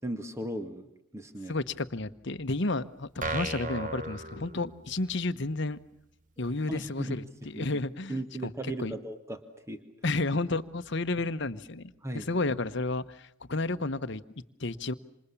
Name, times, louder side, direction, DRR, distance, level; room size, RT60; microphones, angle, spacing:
voice 1, 0.0-1.6 6.7-7.7 8.1-9.8 12.0-12.3, right 1 dB, 15° right, 8 dB, 1.9 m, -37 dB
voice 2, 1.5-5.8 6.4-8.5 8.8-8.9 10.0-14.2 14.6-14.9, left 2 dB, 55° left, 11 dB, 1.1 m, -32 dB
sound 1, 3.2-5.1, right 3 dB, 35° right, 1.2 m, -36 dB
27.5 x 27.0 x 7.3 m, 0.78 s
head